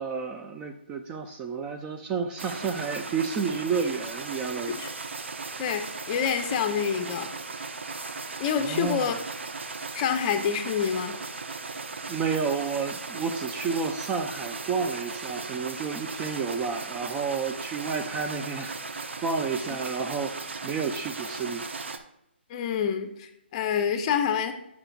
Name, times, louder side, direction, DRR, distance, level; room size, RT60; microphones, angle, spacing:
voice 1, 0.0-4.8 8.6-9.1 12.1-21.7, right 5 dB, 15° right, 5 dB, 0.4 m, -31 dB
sound 1, 2.4-22.0, right 4 dB, 75° right, 0.7 m, -37 dB
voice 2, 5.6-7.3 8.4-9.1 9.9-11.2 22.5-24.5, left 7 dB, 30° left, 7 dB, 0.7 m, -27 dB
8.7 x 5.9 x 2.3 m, 0.83 s
figure-of-eight pair, 145°, 6 cm